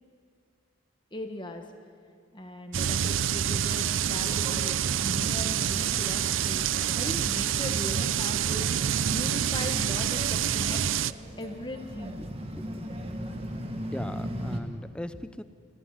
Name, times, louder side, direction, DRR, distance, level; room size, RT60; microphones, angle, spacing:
voice 1, 1.1-1.6 2.3-6.7 6.9-10.8 11.4-12.2, left 1 dB, 25° left, 5 dB, 1.5 m, -38 dB
sound 1, 2.7-11.1, right 9 dB, 85° right, 0.5 m, -27 dB
sound 2, 4.4-14.6, equal, 30° right, 1.8 m, -40 dB
voice 2, 12.2-12.9 13.9-15.4, left 1 dB, 5° left, 12 dB, 0.7 m, -39 dB
26.5 x 16.0 x 9.6 m, 2.2 s
head